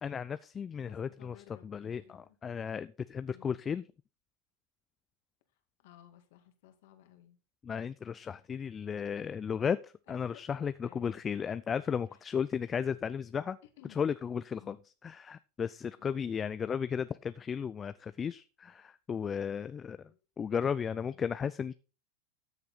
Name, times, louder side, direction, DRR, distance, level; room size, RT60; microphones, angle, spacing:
voice 1, 0.0-1.3 1.6-3.8 7.6-13.6 14.0-14.8 15.0-20.0 20.4-21.7, left 7 dB, 25° left, 0.4 m, -34 dB
voice 2, 0.8-2.4 3.3-3.7 5.8-7.4 10.1-11.2 12.1-12.2 13.6-14.1 14.6-14.8 16.0-16.8 20.1-20.2 21.0-21.3, left 12 dB, 70° left, 2.1 m, -58 dB
13.0 x 6.7 x 4.2 m
hypercardioid pair, 95°, 0 cm